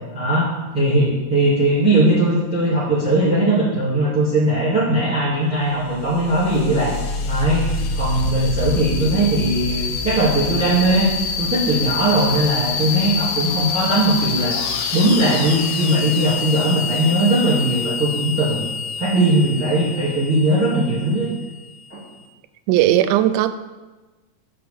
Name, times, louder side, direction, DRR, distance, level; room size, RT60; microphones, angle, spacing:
voice 1, 0.1-0.5 0.7-6.9 7.3-7.7 7.9-11.1 11.4-14.6 14.9-18.7 19.0-21.3 21.9-22.0, right 1 dB, 5° right, -8 dB, 2.2 m, -19 dB
sound 1, 5.7-22.1, left 5 dB, 75° left, 1.4 m, -26 dB
voice 2, 22.7-23.5, right 13 dB, 90° right, 11 dB, 2.1 m, -17 dB
6.7 x 5.7 x 6.9 m, 1.2 s
omnidirectional pair, 3.5 m